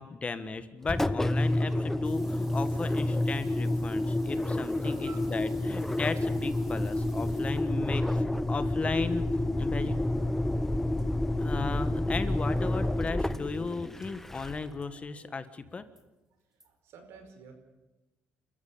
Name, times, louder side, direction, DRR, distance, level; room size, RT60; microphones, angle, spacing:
voice 1, 0.0-9.9 11.4-15.9, left 4 dB, 30° left, 11 dB, 1.5 m, -36 dB
Engine, 0.8-14.8, left 1 dB, 5° left, 0.8 m, -29 dB
sound 1, 2.0-7.9 10.7-10.8 11.0-11.1 11.6-11.7 11.9-12.0 12.4-12.6 14.0-14.3 14.8-14.9 15.5-16.0 16.6-16.7, right 1 dB, 10° right, 3.2 m, -56 dB
voice 2, 3.9-4.3 4.7-5.3 15.1-15.3 16.5-17.5, right 6 dB, 75° right, 6 dB, 5.0 m, -53 dB
27.5 x 14.5 x 8.6 m, 1.0 s
cardioid pair, 100°, 4 cm